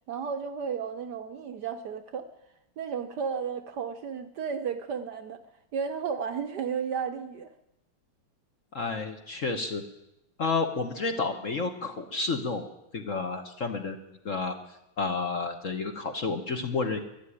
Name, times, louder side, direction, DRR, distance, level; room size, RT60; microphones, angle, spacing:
voice 1, 0.1-2.3 2.8-5.4 5.7-7.5, right 6 dB, 65° right, 8 dB, 1.2 m, -33 dB
voice 2, 8.7-9.8 10.4-12.7 12.9-14.0 14.2-14.6 15.0-17.0, left 4 dB, 45° left, 6 dB, 1.2 m, -30 dB
13.0 x 11.5 x 9.9 m, 0.89 s
omnidirectional pair, 2.3 m